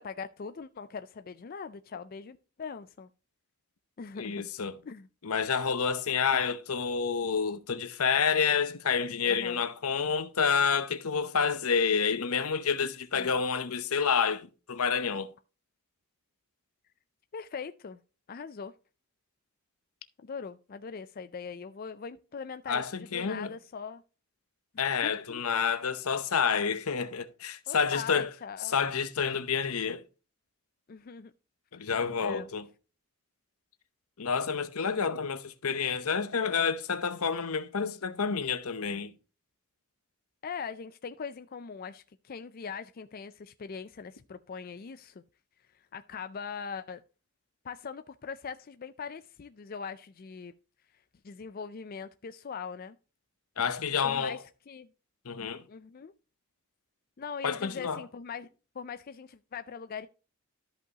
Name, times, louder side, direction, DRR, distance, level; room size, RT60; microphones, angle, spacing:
voice 1, 0.0-3.1 4.0-4.4 4.9-5.1 9.2-9.6 13.1-13.4 17.3-18.0 18.3-18.7 20.2-24.0 25.0-25.4 27.7-28.8 30.9-31.3 31.7-31.8 32.2-32.5 40.4-45.2 45.7-47.0 47.6-50.5 51.2-53.0 54.0-54.9 55.7-56.1 57.2-58.5 58.7-60.1, left 6 dB, 40° left, 0.4 m, -41 dB
voice 2, 4.2-4.7 5.2-15.3 22.7-23.5 24.8-28.3 28.7-30.0 31.7-32.7 34.2-39.1 53.6-54.3 55.3-55.6 57.4-58.0, left 6 dB, 75° left, 0.8 m, -29 dB
13.0 x 5.5 x 2.9 m
head